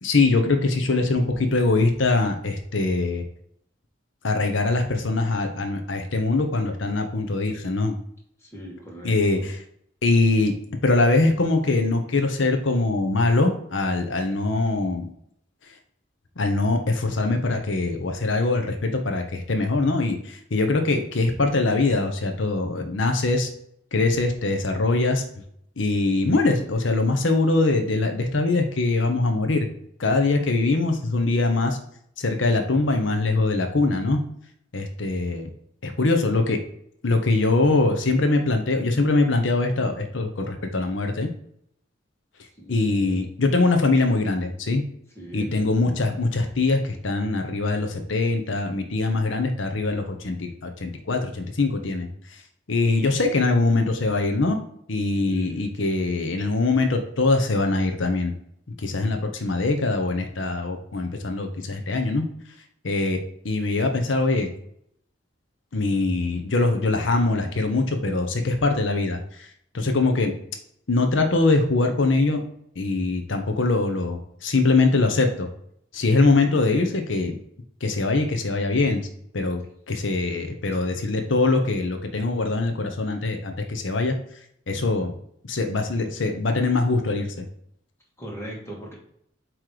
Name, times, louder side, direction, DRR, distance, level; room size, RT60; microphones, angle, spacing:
voice 1, 0.0-3.2 4.2-8.0 9.0-9.6 10.0-10.5 10.8-15.1 16.4-23.5 23.9-25.2 25.8-29.7 30.0-31.8 32.2-34.2 34.7-35.5 35.8-36.6 37.0-41.3 42.7-44.8 45.3-52.4 52.7-54.6 54.9-58.3 58.8-62.2 62.8-63.2 63.4-64.5 65.7-69.5 69.7-70.3 70.9-72.4 72.8-75.5 75.9-77.4 77.8-79.1 79.3-79.6 79.9-84.2 84.7-85.1 85.5-87.4, left 3 dB, 85° left, 5 dB, 0.9 m, -22 dB
voice 2, 8.4-9.5 42.6-43.2 45.2-45.5 55.3-55.7 88.2-88.9, right 1 dB, 15° left, -2 dB, 1.7 m, -39 dB
7.6 x 3.2 x 4.9 m, 0.69 s
head